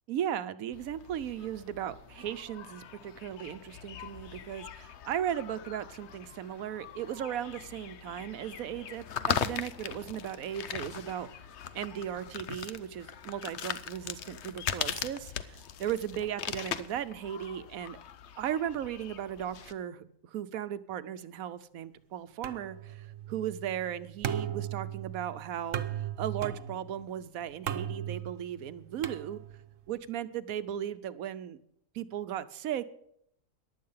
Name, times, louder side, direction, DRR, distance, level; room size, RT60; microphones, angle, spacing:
voice 1, 0.1-11.5 11.7-18.0 18.4-29.4 29.9-31.6 31.9-32.9, right 10 dB, 90° right, 13 dB, 1.2 m, -36 dB
sound 1, 0.7-19.7, left 8 dB, 60° left, 1.0 m, -40 dB
sound 2, 22.4-29.8, right 10 dB, 70° right, 1.2 m, -38 dB
15.5 x 11.0 x 5.6 m, 0.72 s
omnidirectional pair, 1.4 m